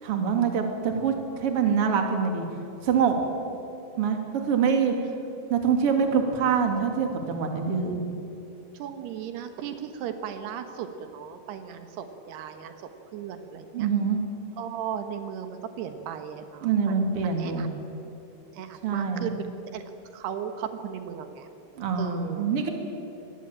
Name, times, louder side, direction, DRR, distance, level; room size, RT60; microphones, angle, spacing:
voice 1, 0.0-1.1 1.4-2.4 2.8-3.2 4.0-4.2 4.4-4.9 5.5-8.0 13.7-14.2 16.6-17.7 18.8-19.3 21.8-22.7, right 6 dB, 40° right, 4 dB, 3.0 m, -24 dB
voice 2, 8.7-12.7 13.1-13.9 14.6-17.0 17.4-17.7 18.5-19.8 20.1-21.5 22.0-22.5, right 8 dB, 80° right, 7 dB, 3.4 m, -36 dB
25.0 x 20.0 x 8.8 m, 2.9 s
omnidirectional pair, 4.6 m